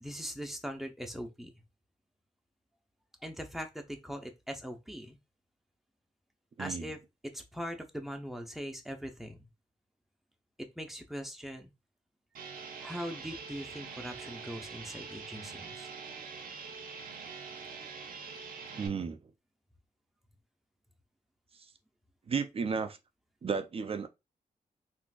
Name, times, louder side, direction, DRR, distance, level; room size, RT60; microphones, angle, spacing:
voice 1, 0.0-1.5 3.2-5.2 6.6-9.5 10.8-11.7 12.8-15.9, equal, ahead, 0.7 m, -41 dB
voice 2, 6.6-6.9 18.7-19.2 22.3-23.0 23.4-24.1, right 5 dB, 40° right, 0.5 m, -33 dB
sound 1, 12.3-18.9, right 5 dB, 90° right, 0.6 m, -44 dB
3.7 x 2.6 x 2.4 m
cardioid pair, 90°, 15 cm